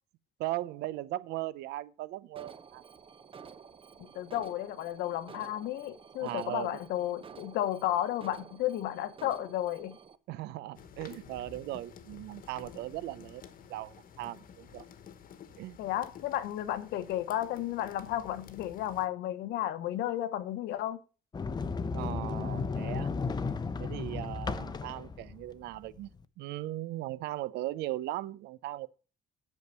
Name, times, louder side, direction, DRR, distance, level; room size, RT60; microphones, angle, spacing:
voice 1, 0.4-2.8 6.2-6.8 10.3-13.4 13.7-14.8 15.6-15.8 21.9-23.1 23.8-26.1 26.4-28.9, right 16 dB, 85° right, 0.6 m, -38 dB
Alarm, 2.4-10.2, right 6 dB, 30° right, 0.8 m, -51 dB
voice 2, 4.0-10.0 15.8-21.0, left 13 dB, 85° left, 1.1 m, -33 dB
sound 1, 10.7-19.1, left 8 dB, 55° left, 1.2 m, -51 dB
Sliding door, 21.3-26.2, left 4 dB, 25° left, 0.7 m, -34 dB
8.3 x 6.4 x 6.7 m
cardioid pair, 110°, 17 cm